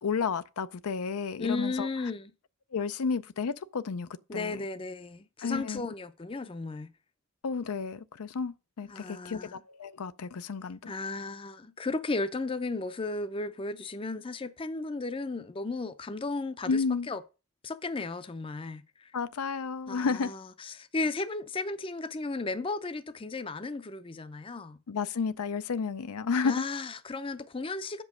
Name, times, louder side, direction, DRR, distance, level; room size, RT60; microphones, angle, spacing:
voice 1, 0.0-1.9 2.7-4.6 5.4-5.8 7.4-10.9 16.6-17.1 19.1-20.3 24.9-26.5, left 5 dB, 90° left, 0.5 m, -32 dB
voice 2, 1.4-2.3 4.3-6.9 8.9-9.6 10.9-17.2 17.6-19.1 19.9-24.8 26.4-28.0, left 3 dB, 25° left, 0.5 m, -35 dB
7.2 x 5.3 x 6.2 m
head